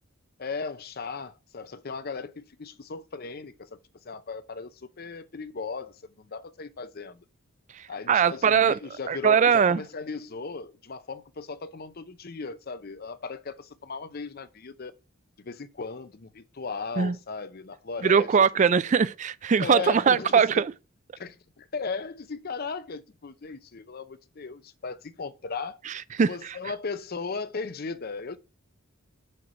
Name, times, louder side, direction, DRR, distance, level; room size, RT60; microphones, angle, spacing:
voice 1, 0.4-3.8 4.0-7.2 7.9-15.0 15.4-18.3 19.6-20.6 21.2-25.8 26.3-28.4, left 4 dB, 50° left, 0.7 m, -37 dB
voice 2, 7.7-8.8 9.1-9.8 17.0-17.2 18.0-20.7 25.9-26.5, right 6 dB, 35° right, 0.3 m, -21 dB
6.6 x 4.6 x 6.2 m
head